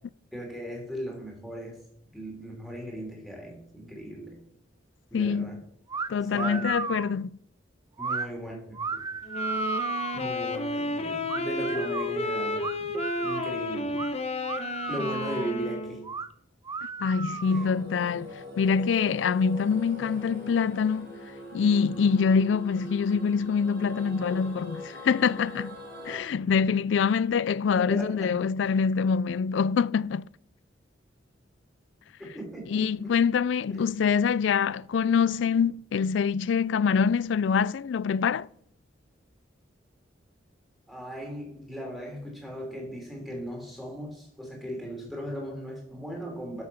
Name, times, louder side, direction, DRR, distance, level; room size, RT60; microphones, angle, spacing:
voice 1, 0.3-1.8 2.1-4.4 5.1-5.6 6.3-6.7 8.0-9.0 10.1-14.1 14.9-16.0 17.5-17.6 27.7-28.6 32.2-33.2 33.7-33.8 40.9-46.6, equal, ahead, 3.3 m, -37 dB
voice 2, 5.1-5.6 6.1-7.3 17.0-21.1 21.5-25.8 26.1-30.3 32.7-38.5, left 6 dB, 70° left, 0.3 m, -25 dB
sound 1, 5.9-6.1 6.4-7.1 8.0-8.3 8.7-10.3 11.3-12.1 12.6-13.5 14.0-14.1 14.4-15.5 16.0-16.3 16.6-17.8, right 5 dB, 20° right, 0.4 m, -34 dB
sound 2, 9.3-16.1, left 2 dB, 35° left, 1.0 m, -31 dB
sound 3, 17.4-26.2, left 1 dB, 55° right, 4.0 m, -42 dB
11.5 x 6.9 x 5.7 m
head